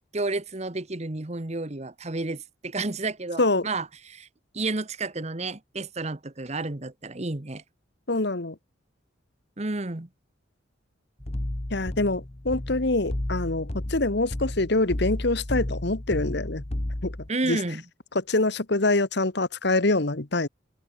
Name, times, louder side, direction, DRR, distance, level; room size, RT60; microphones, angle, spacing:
voice 1, 0.1-4.3 4.5-7.6 9.6-10.1 17.3-17.8, right 2 dB, 35° right, 1.1 m, -31 dB
voice 2, 8.1-8.5 11.7-16.6 17.0-17.1 17.4-17.6 18.1-20.5, left 2 dB, 55° left, 1.4 m, -25 dB
sound 1, 11.2-17.3, left 1 dB, 30° left, 1.2 m, -32 dB
head